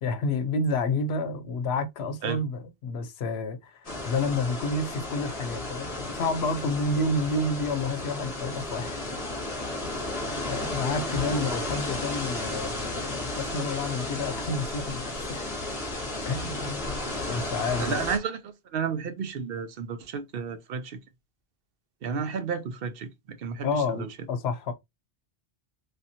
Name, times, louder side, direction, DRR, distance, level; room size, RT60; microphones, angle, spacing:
voice 1, 0.0-9.0 10.4-15.7 16.2-17.0 17.3-18.0 23.6-24.7, left 3 dB, 80° left, 0.9 m, -30 dB
sound 1, 3.8-18.2, left 2 dB, 35° left, 1.0 m, -33 dB
voice 2, 17.8-21.0 22.0-24.1, right 6 dB, 65° right, 0.8 m, -32 dB
3.3 x 2.8 x 2.6 m
omnidirectional pair, 1.1 m